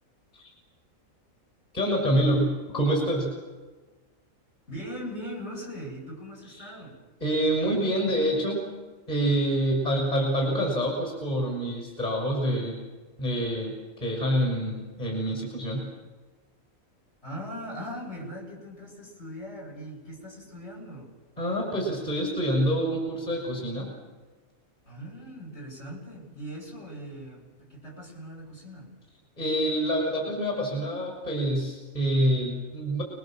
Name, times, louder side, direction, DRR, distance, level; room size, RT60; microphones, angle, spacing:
voice 1, 1.7-3.3 6.6-6.7 7.2-8.6 9.1-12.8 13.2-15.9 21.4-23.9 29.4-33.0, equal, 30° left, 0 dB, 6.5 m, -26 dB
voice 2, 4.7-7.0 17.2-21.1 24.8-28.9, equal, 50° left, -2 dB, 8.5 m, -40 dB
30.0 x 22.0 x 7.6 m, 1.3 s
omnidirectional pair, 1.5 m